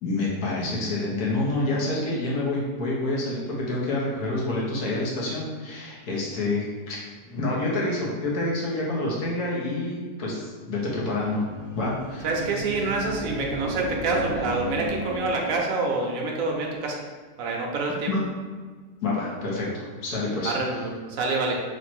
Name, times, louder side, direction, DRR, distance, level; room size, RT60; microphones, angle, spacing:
voice 1, 0.0-7.0 7.3-11.5 11.7-12.3 12.8-12.9 18.1-18.2 19.0-20.5, left 2 dB, 65° left, -4 dB, 1.4 m, -28 dB
sound 1, 11.2-15.7, right 1 dB, 50° right, 1.0 m, -35 dB
voice 2, 12.2-17.0 17.4-18.1 20.4-21.6, right 3 dB, 65° right, 0 dB, 0.8 m, -27 dB
3.2 x 3.1 x 4.4 m, 1.5 s
omnidirectional pair, 1.9 m